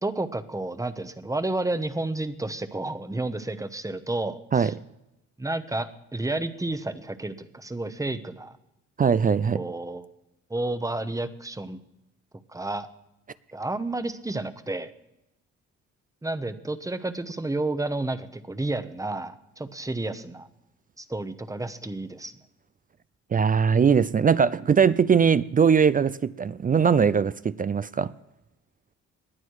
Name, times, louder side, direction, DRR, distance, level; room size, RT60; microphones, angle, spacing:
voice 1, 0.0-4.7 5.4-8.6 9.5-10.1 10.5-11.8 12.5-12.9 13.5-14.9 16.2-20.5 21.0-22.3, right 2 dB, 10° right, 1.0 m, -31 dB
voice 2, 9.0-9.7 23.3-28.1, right 6 dB, 30° right, 0.4 m, -21 dB
20.0 x 9.6 x 4.8 m
cardioid pair, 90°, 30 cm